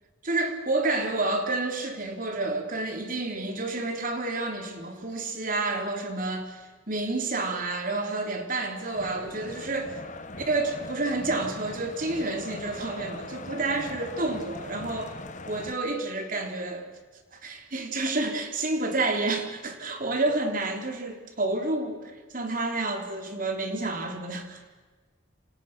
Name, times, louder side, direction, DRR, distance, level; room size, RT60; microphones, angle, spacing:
voice 1, 0.2-9.9 10.4-15.2 15.5-16.9 17.3-24.6, right 2 dB, 40° right, 4 dB, 3.6 m, -29 dB
sound 1, 8.9-15.7, left 2 dB, 35° left, 1.5 m, -40 dB
29.0 x 27.0 x 6.2 m, 1.3 s
head